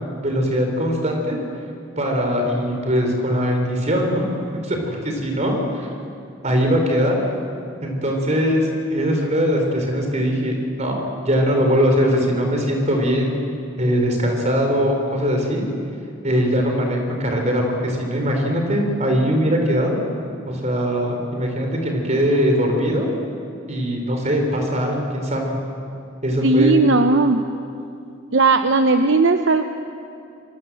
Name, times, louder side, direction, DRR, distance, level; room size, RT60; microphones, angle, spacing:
voice 1, 0.2-1.4 2.0-4.2 4.6-5.9 6.4-7.2 7.8-13.4 13.8-15.7 16.2-20.0 20.5-23.1 23.7-25.5 26.2-26.7, equal, 35° right, 2 dB, 4.8 m, -21 dB
voice 2, 26.4-27.4 28.3-29.7, right 3 dB, 65° right, 7 dB, 0.9 m, -16 dB
26.5 x 24.0 x 7.9 m, 2.6 s
head